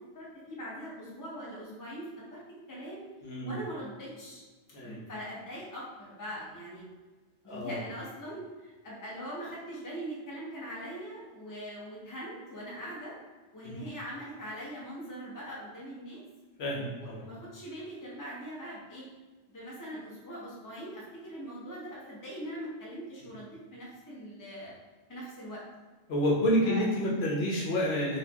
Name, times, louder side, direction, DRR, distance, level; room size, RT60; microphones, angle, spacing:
voice 1, 0.0-2.4 2.7-3.1 3.4-4.4 4.8-6.8 7.4-13.2 13.5-16.2 16.8-19.1 19.5-24.7 25.1-25.6 26.6-26.8, equal, 20° left, -5 dB, 0.7 m, -42 dB
voice 2, 3.2-3.5 4.7-5.0 7.5-7.8 13.6-13.8 16.6-17.2 26.1-28.2, equal, 70° left, -4 dB, 1.0 m, -29 dB
4.1 x 2.4 x 2.8 m, 1.3 s
omnidirectional pair, 1.1 m